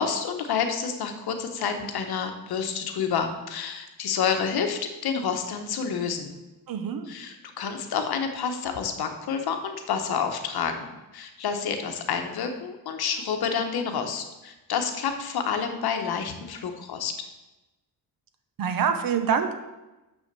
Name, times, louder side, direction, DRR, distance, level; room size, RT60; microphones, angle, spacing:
voice 1, 0.0-6.3 7.1-10.9 11.1-17.1, left 6 dB, 70° left, 5 dB, 1.2 m, -29 dB
voice 2, 6.7-7.1 18.6-19.5, right 7 dB, 65° right, 8 dB, 0.9 m, -25 dB
6.4 x 6.2 x 6.7 m, 1.0 s
wide cardioid pair, 160°, 38 cm